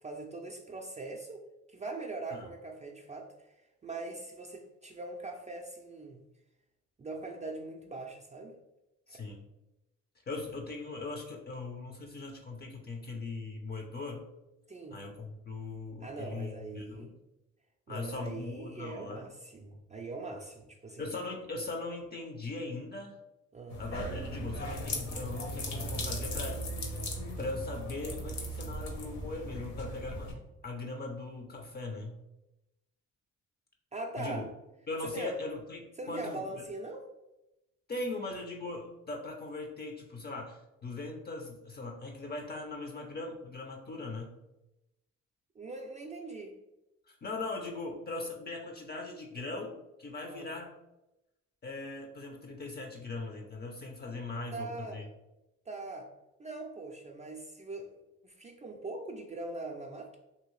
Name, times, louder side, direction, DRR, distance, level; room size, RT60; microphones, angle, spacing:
voice 1, 0.0-1.4 1.7-3.3 3.8-6.2 7.0-8.6 9.1-9.2 14.7-15.0 16.0-17.1 17.9-21.1 23.5-23.8 33.9-34.5 35.0-35.4 36.0-37.1 45.6-46.6 50.3-50.5 54.5-55.1 55.7-56.1 56.4-60.2, right 2 dB, 25° right, 1 dB, 0.4 m, -41 dB
voice 2, 9.1-9.5 10.3-14.2 14.9-17.1 17.9-19.3 21.0-23.1 23.8-26.6 27.4-30.3 30.6-32.2 34.2-34.4 34.9-36.6 37.9-44.3 47.1-50.7 51.6-55.1, left 3 dB, 35° left, 2 dB, 0.5 m, -40 dB
sound 1, 23.7-30.3, equal, 65° left, 0.8 m, -37 dB
2.8 x 2.7 x 3.1 m, 0.94 s
cardioid pair, 90°, 30 cm